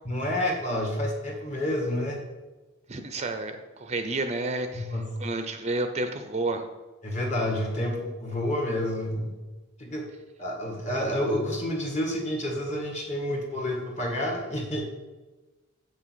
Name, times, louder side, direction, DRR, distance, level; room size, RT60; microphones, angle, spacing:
voice 1, 0.1-2.2 4.7-5.1 7.0-9.4 9.8-10.1 10.4-14.8, left 1 dB, 35° left, 1 dB, 1.8 m, -29 dB
voice 2, 2.9-6.7, right 2 dB, 30° right, 7 dB, 0.6 m, -31 dB
7.4 x 6.3 x 6.2 m, 1.2 s
head